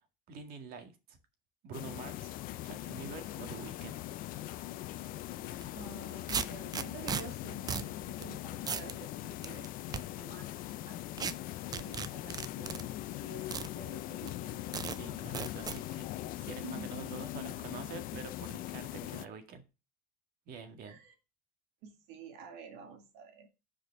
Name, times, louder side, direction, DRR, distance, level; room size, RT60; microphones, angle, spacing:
voice 1, 0.3-1.2 1.6-2.3 2.6-3.9 14.9-19.6 20.5-21.0, right 5 dB, 60° right, 7 dB, 1.8 m, -47 dB
sound 1, 1.7-19.3, left 15 dB, 55° left, 0.5 m, -41 dB
sound 2, 5.5-5.7 6.3-7.2 7.7-7.9 8.2-8.3 8.7-8.9 9.4-10.0 11.2-11.3 11.7-12.8 13.5-13.7 14.3-14.4 14.7-15.0 15.3-15.8, right 6 dB, 20° right, 0.5 m, -35 dB
voice 2, 5.7-10.5 10.9-11.0 11.4-13.0 13.2-14.7 15.0-15.2 16.6-17.2 20.8-21.1 21.8-23.5, right 5 dB, 85° right, 5 dB, 2.1 m, -50 dB
6.8 x 5.0 x 6.4 m, 0.29 s
cardioid pair, 140°, 17 cm